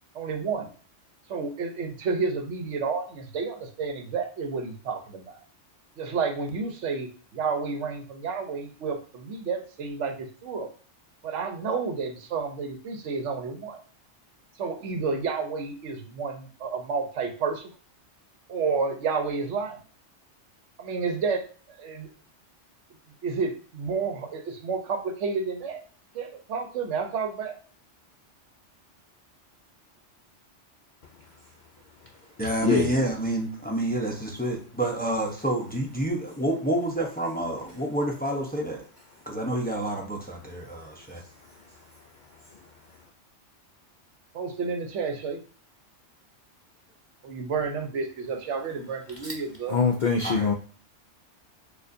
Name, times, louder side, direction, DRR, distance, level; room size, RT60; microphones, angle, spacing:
voice 1, 0.1-0.7 1.3-5.4 6.0-10.7 11.2-13.8 14.6-17.7 18.5-19.8 20.8-22.1 23.2-25.8 26.1-27.6 44.3-45.4 47.2-49.8, right 5 dB, 75° right, 6 dB, 1.0 m, -30 dB
voice 2, 32.4-38.8 39.3-41.2 50.2-50.5, right 1 dB, 10° left, 0 dB, 0.5 m, -28 dB
voice 3, 49.7-50.5, left 5 dB, 65° left, 2 dB, 0.4 m, -23 dB
6.5 x 2.5 x 2.6 m, 0.41 s
omnidirectional pair, 1.2 m